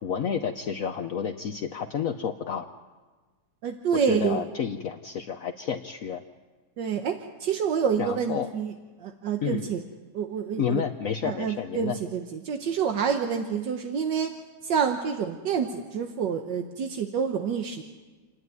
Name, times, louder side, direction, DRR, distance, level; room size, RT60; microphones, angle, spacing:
voice 1, 0.0-2.7 4.1-6.2 8.0-8.5 9.4-9.7 10.6-12.0, left 7 dB, 60° left, 5 dB, 1.0 m, -30 dB
voice 2, 3.6-4.4 6.8-9.8 10.1-10.8 11.2-14.4 14.6-17.8, right 7 dB, 80° right, 5 dB, 1.7 m, -28 dB
28.5 x 10.5 x 9.4 m, 1.3 s
omnidirectional pair, 1.9 m